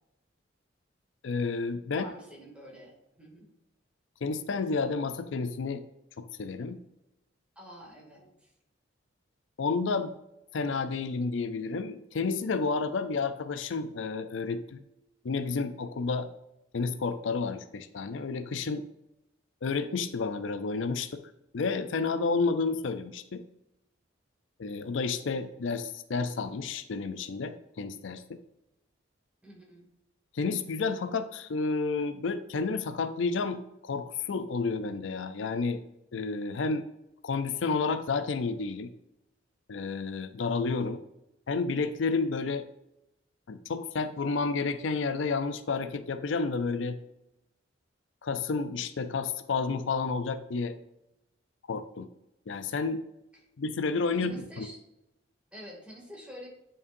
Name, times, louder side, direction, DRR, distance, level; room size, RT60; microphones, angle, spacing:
voice 1, 1.2-2.0 4.2-5.8 6.2-6.8 9.6-10.1 10.5-14.8 15.2-16.3 16.7-18.9 19.6-21.2 21.5-23.4 24.6-28.4 30.3-35.8 36.1-36.9 37.2-38.9 39.7-41.0 41.5-42.6 43.5-47.0 48.2-50.7 51.7-52.1 52.5-53.0 53.6-54.7, left 4 dB, 75° left, 10 dB, 0.5 m, -30 dB
voice 2, 1.9-3.5 7.6-8.5 29.4-29.9 54.1-54.8 55.5-56.5, equal, 5° right, -3 dB, 2.3 m, -47 dB
9.5 x 5.5 x 2.6 m, 0.90 s
head